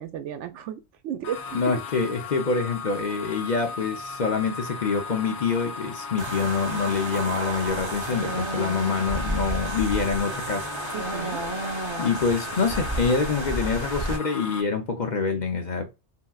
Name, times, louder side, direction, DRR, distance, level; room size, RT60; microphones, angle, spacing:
voice 1, 0.0-1.8 10.9-11.4, right 9 dB, 85° right, 0.9 m, -34 dB
sound 1, 1.2-14.6, left 4 dB, 80° left, 0.9 m, -37 dB
voice 2, 1.5-10.7 12.0-15.9, left 5 dB, 50° left, 0.6 m, -26 dB
sound 2, 6.2-14.2, right 2 dB, 30° right, 0.6 m, -31 dB
3.3 x 2.8 x 2.3 m
omnidirectional pair, 1.2 m